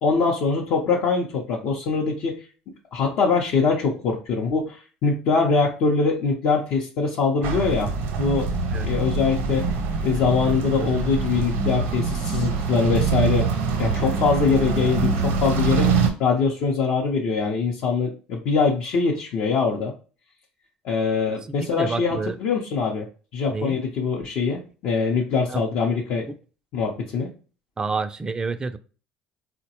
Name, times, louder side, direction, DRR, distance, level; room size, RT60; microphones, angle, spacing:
voice 1, 0.0-2.4 2.9-7.9 8.2-8.5 8.8-9.6 10.0-13.5 13.8-15.9 16.2-19.9 20.8-23.1 23.3-26.2 26.7-27.3, left 5 dB, 65° left, 0.6 m, -23 dB
sound 1, 7.4-16.1, right 5 dB, 70° right, 0.7 m, -24 dB
voice 2, 21.6-22.4 23.5-23.8 25.5-25.6 27.8-28.8, right 4 dB, 20° right, 0.3 m, -28 dB
3.9 x 2.1 x 2.8 m
supercardioid pair, 80°, 3 cm